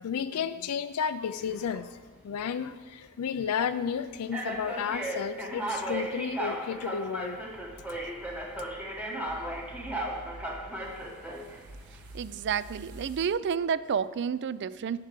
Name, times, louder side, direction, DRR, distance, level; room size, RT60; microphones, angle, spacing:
voice 1, 0.0-1.9 2.2-7.4, left 7 dB, 75° left, 11 dB, 0.4 m, -32 dB
sound 1, 1.3-1.8 2.6-2.8 3.6-3.7 4.3-11.6, right 1 dB, 5° right, 1.1 m, -36 dB
sound 2, 7.2-13.3, right 1 dB, 85° right, 1.0 m, -49 dB
voice 2, 12.1-15.0, right 7 dB, 50° right, 16 dB, 0.4 m, -30 dB
10.5 x 5.8 x 7.5 m, 1.3 s
head